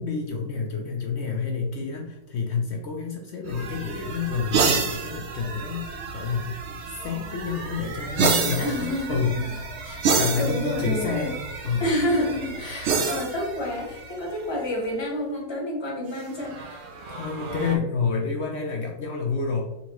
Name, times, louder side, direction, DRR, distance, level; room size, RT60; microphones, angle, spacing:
voice 1, 0.0-6.6 6.8-9.6 10.1-11.4 11.6-11.9 17.1-19.6, left 5 dB, 70° left, 1 dB, 0.6 m, -29 dB
sound 1, 3.4-14.6 16.2-17.8, right 4 dB, 65° right, 0.7 m, -29 dB
voice 2, 8.6-9.4 9.8-11.3 11.8-16.9, left 1 dB, 20° left, -2 dB, 0.9 m, -29 dB
4.0 x 3.5 x 3.0 m, 0.95 s
omnidirectional pair, 1.7 m